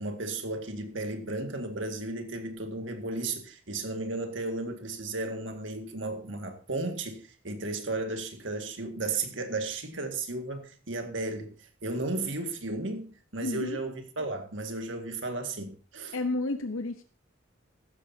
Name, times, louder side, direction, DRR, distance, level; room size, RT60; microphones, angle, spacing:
voice 1, 0.0-16.2, right 2 dB, 70° right, 1.9 m, -34 dB
voice 2, 13.4-13.8 16.1-17.0, left 2 dB, 85° left, 0.8 m, -31 dB
15.0 x 13.0 x 2.8 m
head